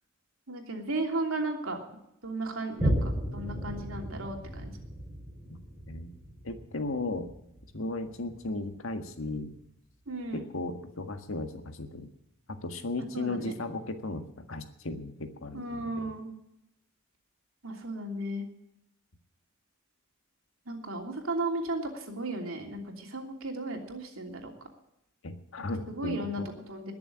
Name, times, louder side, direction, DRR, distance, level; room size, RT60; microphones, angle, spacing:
voice 1, 0.5-1.8 2.2-4.7 10.1-10.4 13.1-13.5 15.5-16.3 17.6-18.4 20.7-24.5 25.6-26.9, right 2 dB, 80° right, 2 dB, 3.1 m, -35 dB
Boom, 2.8-9.7 10.2-10.3, equal, 5° right, 3.3 m, -35 dB
voice 2, 6.4-7.3 7.7-9.5 10.3-12.1 12.6-16.1 25.2-26.5, left 2 dB, 70° left, 7 dB, 1.7 m, -36 dB
20.5 x 7.0 x 8.6 m, 0.82 s
head